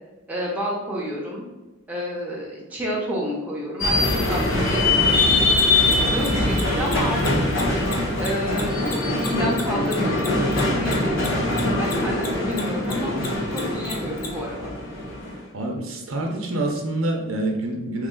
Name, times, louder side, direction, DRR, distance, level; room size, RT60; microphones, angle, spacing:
voice 1, 0.3-1.4 1.9-7.3 8.2-11.2 11.6-13.2 13.5-14.7, equal, 5° right, -4 dB, 0.8 m, -30 dB
sound 1, 3.8-15.4, left 2 dB, 65° left, 1.0 m, -23 dB
Mechanisms, 5.5-12.3 12.5-14.3, left 5 dB, 45° left, 0.6 m, -34 dB
voice 2, 15.5-18.1, right 1 dB, 75° right, 2 dB, 0.7 m, -26 dB
3.2 x 3.1 x 3.8 m, 1.1 s
head